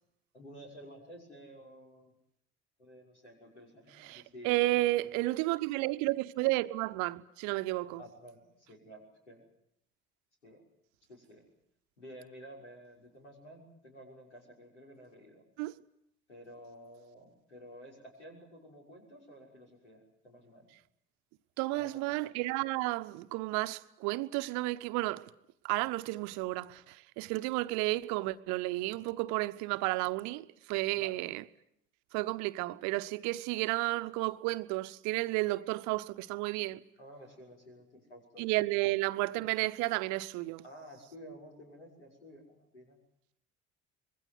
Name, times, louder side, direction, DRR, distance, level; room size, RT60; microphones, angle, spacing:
voice 1, 0.3-2.1 2.8-4.6 5.0-5.1 8.0-9.5 10.4-10.6 11.1-11.4 12.0-15.4 16.3-20.7 21.7-22.3 30.9-31.2 37.0-38.4 40.6-43.0, equal, 80° left, 6.2 m, -52 dB
voice 2, 4.0-8.0 15.6-15.8 21.6-25.3 25.6-31.4 32.1-36.8 38.4-40.6, right 20 dB, 55° right, 1.0 m, -32 dB
26.0 x 21.5 x 7.9 m
figure-of-eight pair, 55°, 34 cm